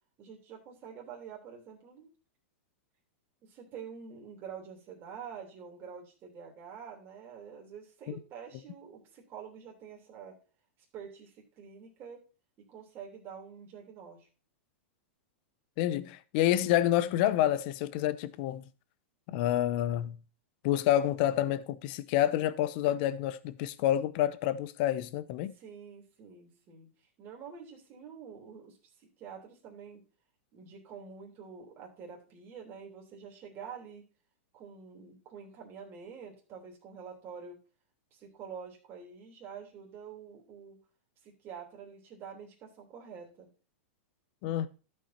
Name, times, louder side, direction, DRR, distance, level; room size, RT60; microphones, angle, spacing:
voice 1, 0.2-2.1 3.4-10.4 10.9-12.2 12.7-14.3 25.5-26.9 27.2-30.0 30.5-34.0 34.5-37.6 38.1-40.8 41.2-43.5, right 7 dB, 35° right, 3.1 m, -47 dB
voice 2, 15.8-18.6 19.3-20.2 20.6-25.5 44.4-44.7, left 12 dB, 50° left, 0.7 m, -28 dB
12.5 x 5.5 x 4.2 m
supercardioid pair, 140°, 7 cm